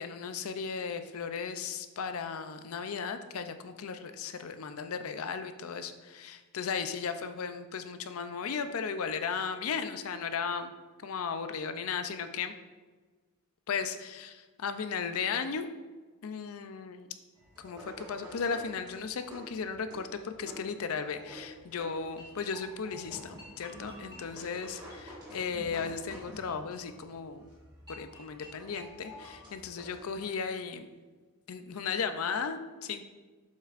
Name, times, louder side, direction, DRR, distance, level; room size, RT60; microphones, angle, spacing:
voice 1, 0.0-10.7 11.0-12.5 13.7-15.7 16.2-17.1 17.6-27.4 27.9-30.9 31.5-33.0, left 6 dB, 80° left, 9 dB, 0.5 m, -36 dB
sound 1, 17.4-30.3, equal, 20° right, 1.6 m, -49 dB
7.6 x 5.6 x 2.5 m, 1.3 s
head